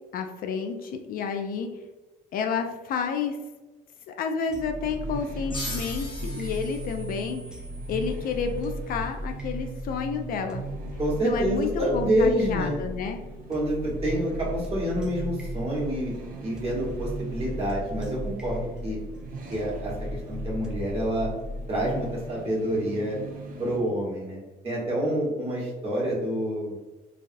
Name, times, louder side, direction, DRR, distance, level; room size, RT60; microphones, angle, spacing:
voice 1, 0.1-1.7 2.3-3.4 4.1-7.4 7.9-10.6 11.2-13.2, left 6 dB, 60° left, 5 dB, 0.4 m, -30 dB
sound 1, 4.5-22.3, left 1 dB, 5° right, 0.4 m, -37 dB
sound 2, 4.5-23.8, right 4 dB, 55° right, 0.6 m, -40 dB
sound 3, 5.5-8.7, left 1 dB, 30° left, 0.9 m, -40 dB
voice 2, 11.0-12.8 13.5-16.1 16.4-19.0 19.5-21.3 21.7-23.2 23.6-24.4 24.6-26.7, equal, 35° right, -4 dB, 1.3 m, -27 dB
3.2 x 2.4 x 2.6 m, 1.2 s
cardioid pair, 110°, 17 cm